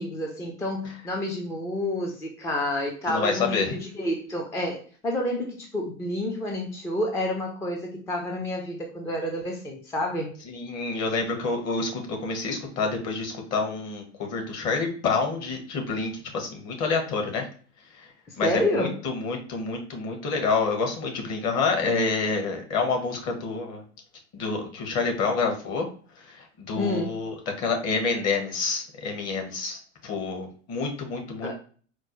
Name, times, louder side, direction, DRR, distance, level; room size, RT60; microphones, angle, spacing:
voice 1, 0.0-10.3 18.3-19.0 26.8-27.2 31.4-31.5, left 1 dB, 10° left, 1 dB, 0.3 m, -29 dB
voice 2, 3.1-3.7 10.5-17.5 17.9-18.1 18.4-23.8 24.3-25.9 26.2-31.5, left 4 dB, 40° left, 3 dB, 1.2 m, -28 dB
4.3 x 2.0 x 2.9 m, 0.41 s
hypercardioid pair, 110°, 39 cm